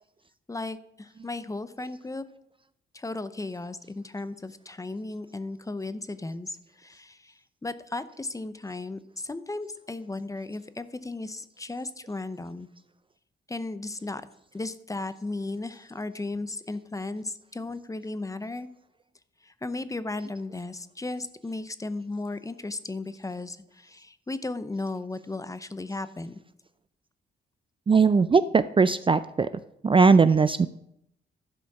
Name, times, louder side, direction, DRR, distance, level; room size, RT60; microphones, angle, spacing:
voice 1, 0.5-2.3 2.9-12.7 13.5-14.3 14.5-18.7 19.4-26.4, left 2 dB, 15° left, 13 dB, 0.6 m, -35 dB
voice 2, 27.9-29.5 29.8-30.7, right 4 dB, 25° right, 13 dB, 0.4 m, -19 dB
11.5 x 5.1 x 5.9 m, 0.78 s
cardioid pair, 90°, 20 cm